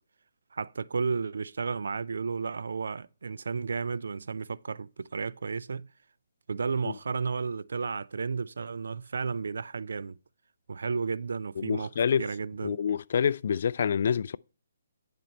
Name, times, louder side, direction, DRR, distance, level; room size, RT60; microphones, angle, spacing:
voice 1, 0.5-5.9 6.5-10.2 10.7-11.9 12.2-12.8, right 5 dB, 75° right, 0.4 m, -33 dB
voice 2, 11.6-12.2 12.6-14.4, left 7 dB, 55° left, 0.3 m, -27 dB
10.5 x 4.4 x 5.3 m
hypercardioid pair, 155°, 0 cm